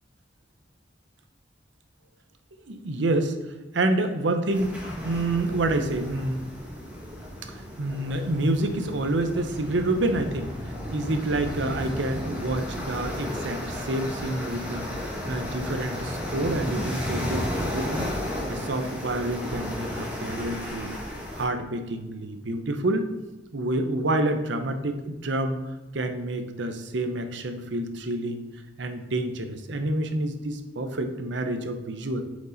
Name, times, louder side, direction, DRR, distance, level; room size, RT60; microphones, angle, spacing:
voice 1, 2.7-3.4 3.7-6.5 7.5-10.5 10.9-14.9 15.2-18.1 18.5-21.0 21.3-23.0 23.5-25.6 25.9-28.4 28.8-32.2, right 1 dB, 75° right, 7 dB, 0.8 m, -28 dB
sound 1, 4.5-21.4, equal, 10° right, 1.6 m, -33 dB
8.1 x 5.2 x 3.9 m, 1.1 s
head